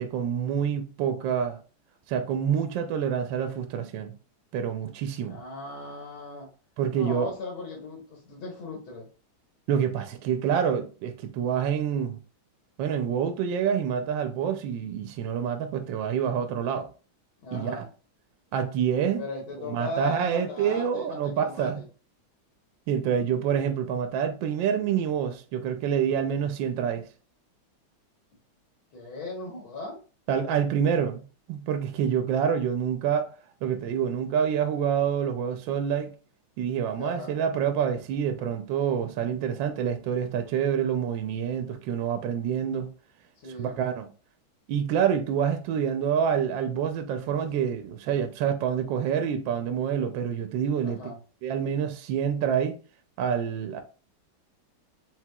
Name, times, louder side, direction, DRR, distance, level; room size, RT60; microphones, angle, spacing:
voice 1, 0.0-1.6 2.1-4.1 4.5-5.4 6.8-7.3 9.7-12.2 12.8-16.9 17.5-17.8 18.5-19.2 19.6-21.8 22.9-27.0 30.3-33.3 33.6-36.1 36.6-42.9 43.6-44.1 44.7-51.1 51.4-52.8 53.2-53.8, right 8 dB, 75° right, 1.2 m, -27 dB
voice 2, 5.3-6.5 6.9-9.1 17.4-17.9 19.2-21.8 28.9-30.0 36.9-37.4 43.4-43.8 50.8-51.2, left 2 dB, 75° left, 1.9 m, -37 dB
4.6 x 3.6 x 2.2 m
omnidirectional pair, 2.3 m